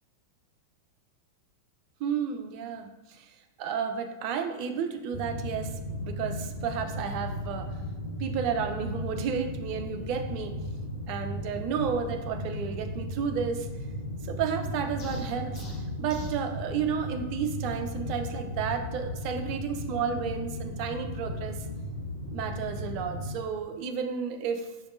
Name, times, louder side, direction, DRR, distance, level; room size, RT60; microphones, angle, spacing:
voice 1, 2.0-7.7 8.2-10.5 11.1-13.7 14.2-15.6 16.0-21.7 22.3-24.7, right 7 dB, 45° right, 6 dB, 0.4 m, -32 dB
sound 1, 5.1-23.3, left 1 dB, 75° left, 0.7 m, -36 dB
sound 2, 15.0-16.4, equal, 35° left, 1.0 m, -40 dB
5.6 x 3.4 x 2.5 m, 1.1 s
figure-of-eight pair, 90°, 0 cm